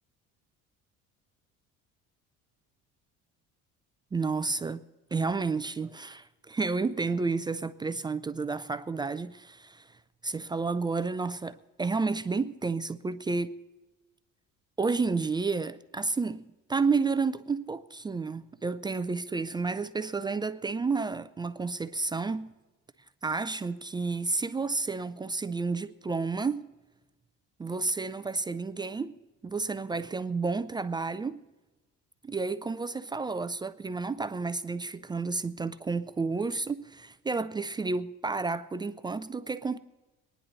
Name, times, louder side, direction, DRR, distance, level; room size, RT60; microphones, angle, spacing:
voice 1, 4.1-4.8 5.1-10.0 10.2-13.5 14.8-22.5 23.2-26.7 27.6-29.2 29.4-31.4 32.2-39.8, right 4 dB, 15° right, 0.3 m, -31 dB
23.5 x 10.0 x 4.0 m
cardioid pair, 125°, 31 cm